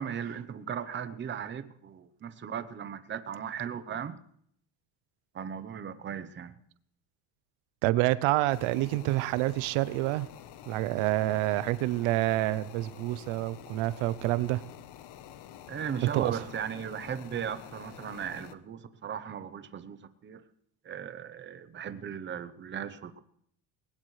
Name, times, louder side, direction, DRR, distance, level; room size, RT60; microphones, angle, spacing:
voice 1, 0.0-4.2 5.3-6.6 15.7-20.4 20.8-23.2, right 8 dB, 25° right, 0.8 m, -37 dB
voice 2, 7.8-10.3 10.7-14.6 16.1-16.4, right 17 dB, 75° right, 0.8 m, -28 dB
sound 1, 8.5-18.5, left 11 dB, 55° left, 1.1 m, -48 dB
20.5 x 19.0 x 3.2 m
cardioid pair, 150°, 49 cm